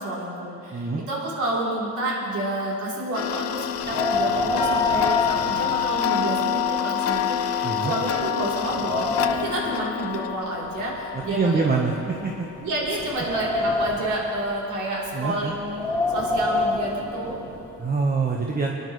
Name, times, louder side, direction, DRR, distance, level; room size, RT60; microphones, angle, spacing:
voice 1, 0.0-11.6 12.1-12.2 12.6-17.3, right 1 dB, 80° right, -5 dB, 3.6 m, -29 dB
voice 2, 0.7-1.0 7.6-7.9 11.3-12.5 15.1-15.5 17.8-18.7, right 4 dB, 30° right, -1 dB, 1.3 m, -25 dB
Tick-tock, 3.1-10.4, left 8 dB, 50° left, 0.6 m, -28 dB
Wind, 3.7-6.4 6.7-6.8 7.5-7.6 8.1-9.7 10.6-12.1 12.7-14.3 15.5-17.7, left 2 dB, 10° left, 3.8 m, -28 dB
sound 1, 4.6-13.4 13.7-14.6 15.3-15.4 15.8-16.0, left 9 dB, 75° left, 1.6 m, -31 dB
24.0 x 11.0 x 3.3 m, 2.8 s
cardioid pair, 90°, 30 cm